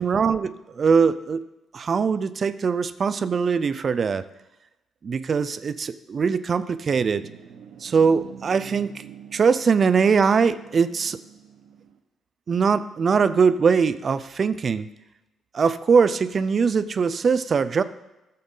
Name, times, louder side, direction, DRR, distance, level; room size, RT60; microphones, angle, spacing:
voice 1, 0.0-1.4 1.7-4.2 5.0-7.2 7.8-8.9 9.3-11.2 12.5-14.9 15.5-17.8, right 5 dB, 45° right, 14 dB, 0.5 m, -21 dB
sound 1, 6.5-12.0, right 8 dB, 80° right, 1.0 m, -46 dB
14.5 x 7.6 x 3.9 m, 0.97 s
cardioid pair, 90°, 0 cm